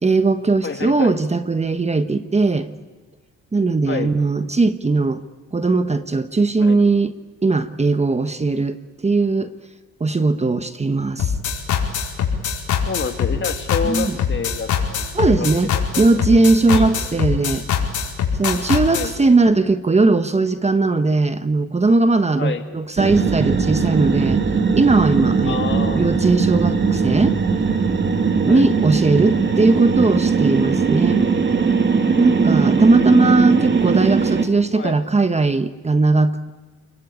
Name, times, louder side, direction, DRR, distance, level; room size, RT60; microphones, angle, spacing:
voice 1, 0.0-2.7 3.5-5.2 5.5-7.1 7.4-8.8 9.0-9.5 10.0-11.3 13.8-14.2 15.1-17.6 18.3-24.4 24.7-25.6 25.9-27.4 28.4-31.3 32.2-36.5, right 3 dB, 20° right, 10 dB, 1.3 m, -18 dB
voice 2, 0.6-1.2 3.9-4.1 6.6-6.9 12.9-16.2 16.7-17.1 18.9-19.1 22.4-22.6 25.4-26.1 28.5-28.7 33.1-33.6 34.7-35.0, left 5 dB, 40° left, 6 dB, 2.7 m, -29 dB
sound 1, 11.2-19.1, left 7 dB, 75° left, 5.0 m, -22 dB
sound 2, 23.0-34.5, right 5 dB, 35° right, 2.6 m, -19 dB
29.5 x 21.5 x 8.7 m, 1.3 s
cardioid pair, 90°, 30 cm